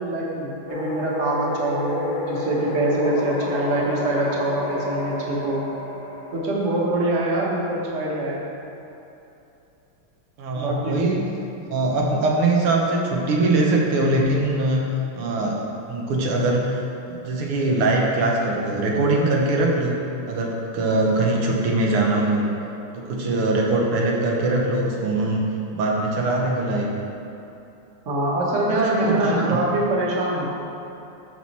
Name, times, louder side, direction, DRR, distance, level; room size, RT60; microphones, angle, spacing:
voice 1, 0.0-5.6 6.3-8.4 10.5-11.0 28.0-30.5, right 1 dB, 40° right, -3 dB, 1.4 m, -24 dB
sound 1, 0.7-7.6, left 1 dB, 70° left, 1.9 m, -31 dB
voice 2, 10.4-11.2 11.7-14.9 15.2-20.0 20.3-22.5 22.9-25.5 25.7-26.9 28.8-29.6, right 2 dB, 85° right, -2 dB, 2.0 m, -22 dB
8.9 x 6.2 x 4.2 m, 2.9 s
omnidirectional pair, 2.3 m